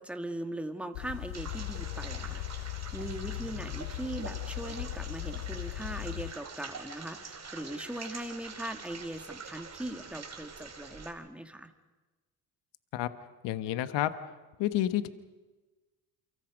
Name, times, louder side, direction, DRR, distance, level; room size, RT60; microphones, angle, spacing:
voice 1, 0.0-11.7, right 1 dB, 5° right, 6 dB, 2.3 m, -40 dB
sound 1, 0.9-6.3, left 18 dB, 85° left, 0.8 m, -38 dB
sound 2, 1.3-11.1, right 5 dB, 35° right, 3.8 m, -45 dB
voice 2, 13.4-14.1 14.6-15.1, left 13 dB, 70° left, 12 dB, 1.5 m, -29 dB
29.0 x 24.5 x 5.3 m, 1.2 s
supercardioid pair, 75°, 45 cm